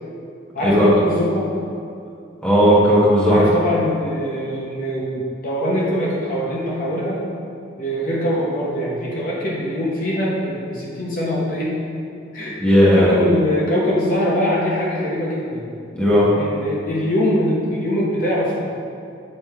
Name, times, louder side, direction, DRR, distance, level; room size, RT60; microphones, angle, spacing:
voice 1, 0.5-1.5 3.3-7.2 7.8-11.8 12.3-12.6 12.9-15.7 16.4-18.6, equal, 45° left, -5 dB, 0.9 m, -22 dB
voice 2, 2.4-3.5 12.6-13.1 15.9-16.3, equal, 5° left, -8 dB, 1.3 m, -14 dB
7.5 x 3.2 x 4.5 m, 2.5 s
head